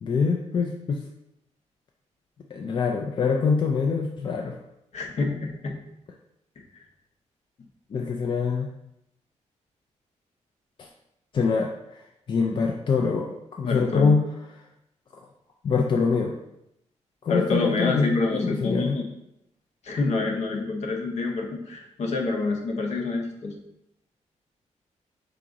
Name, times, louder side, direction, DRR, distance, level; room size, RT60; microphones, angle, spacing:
voice 1, 0.0-1.0 2.5-4.6 7.9-8.7 10.8-10.9 11.3-12.0 12.3-14.2 15.6-16.3 17.2-19.0, left 5 dB, 40° left, 1 dB, 0.4 m, -24 dB
voice 2, 4.9-5.8 13.6-14.1 17.3-19.0 19.8-23.5, left 3 dB, 65° left, 2 dB, 0.8 m, -27 dB
5.0 x 2.9 x 3.6 m, 0.81 s
wide cardioid pair, 155°, 12 cm